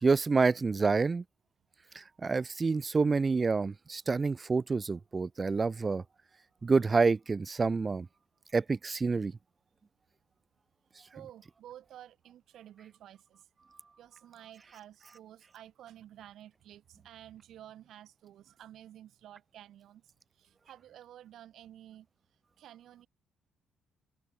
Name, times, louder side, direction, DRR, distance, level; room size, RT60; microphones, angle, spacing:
voice 1, 0.0-1.2 1.9-6.0 6.6-8.1 8.5-9.3, right 4 dB, 30° right, 0.7 m, -28 dB
voice 2, 11.1-13.5 14.0-22.1 22.6-23.1, right 11 dB, 75° right, 4.3 m, -52 dB
open air
cardioid pair, 90°, 0 cm